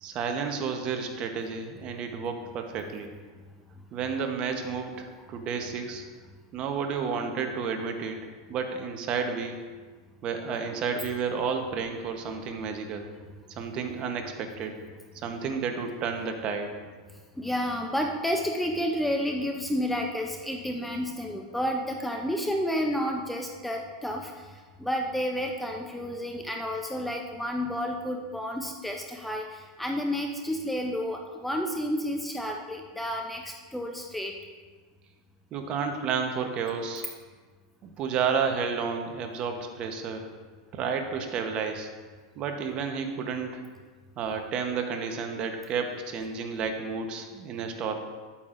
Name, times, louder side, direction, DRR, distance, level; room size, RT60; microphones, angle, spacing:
voice 1, 0.0-3.1 3.9-6.0 6.5-8.2 8.5-9.6 10.2-13.1 13.5-14.8 15.2-16.7 35.5-37.1 37.8-40.3 40.7-41.9 42.4-43.6 44.2-48.0, right 5 dB, 35° right, 5 dB, 0.9 m, -31 dB
voice 2, 17.4-34.3, equal, 5° left, 2 dB, 0.5 m, -31 dB
10.0 x 8.4 x 2.5 m, 1.4 s
supercardioid pair, 135°, 3 cm